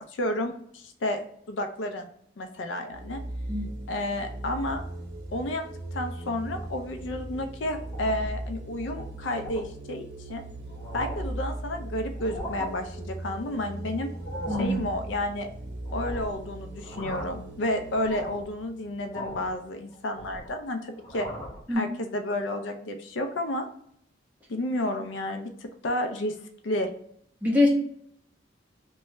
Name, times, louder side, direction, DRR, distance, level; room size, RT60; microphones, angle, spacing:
voice 1, 0.1-2.1 2.4-3.2 3.9-4.8 5.3-5.6 5.9-10.4 10.9-14.1 14.6-15.5 15.9-21.3 21.7-23.7 24.5-25.5 25.8-26.3 26.6-26.9, left 1 dB, 75° left, 6 dB, 0.5 m, -31 dB
sound 1, 2.9-20.3, right 1 dB, 65° right, 0.7 m, -39 dB
sound 2, 7.8-8.4 8.8-9.0 9.4-9.7 10.3-10.4 10.7-11.4 12.1-12.7 14.1-14.8 15.9-16.4 16.8-17.5 17.9-18.5 19.1-19.6 19.9-20.6 21.0-21.6, equal, 15° left, 0.8 m, -38 dB
voice 2, 14.5-14.8 21.7-21.9 27.4-27.7, left 2 dB, 10° right, -3 dB, 0.9 m, -23 dB
3.2 x 2.2 x 2.9 m, 0.66 s
head